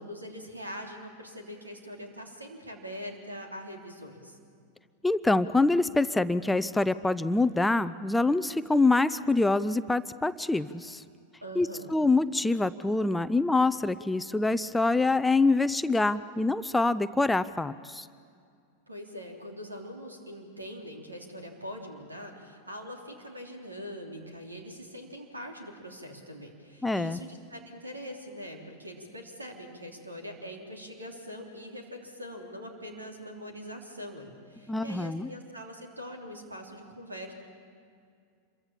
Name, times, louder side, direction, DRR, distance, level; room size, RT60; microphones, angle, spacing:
voice 1, 0.0-4.4 11.4-12.0 18.9-37.3, equal, 80° right, 2 dB, 3.3 m, -43 dB
voice 2, 5.0-11.0 11.6-18.1 26.8-27.2 34.7-35.3, left 3 dB, 5° left, 13 dB, 0.5 m, -25 dB
27.0 x 23.0 x 7.2 m, 2.3 s
figure-of-eight pair, 90°, 0 cm